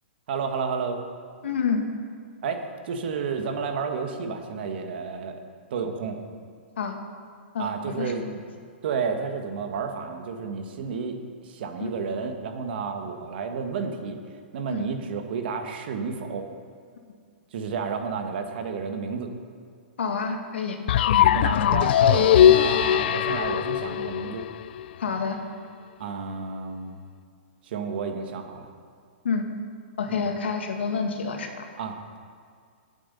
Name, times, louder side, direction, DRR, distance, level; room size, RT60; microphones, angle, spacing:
voice 1, 0.3-1.0 2.4-5.4 5.7-6.2 7.6-8.2 8.8-11.1 11.4-14.2 14.5-16.5 17.5-19.3 21.3-24.4 26.0-27.0 27.6-28.7 30.1-30.2 31.8-32.2, right 5 dB, 60° right, 5 dB, 1.7 m, -31 dB
voice 2, 1.4-1.9 6.8-6.9 7.5-8.3 11.8-11.9 14.7-14.9 20.0-20.8 21.1-21.9 25.0-25.4 29.2-29.5 30.0-31.7, left 5 dB, 80° left, 4 dB, 1.9 m, -29 dB
sound 1, 20.9-24.8, left 11 dB, 60° left, 0.4 m, -20 dB
17.0 x 8.2 x 5.4 m, 2.1 s
hypercardioid pair, 130°, 6 cm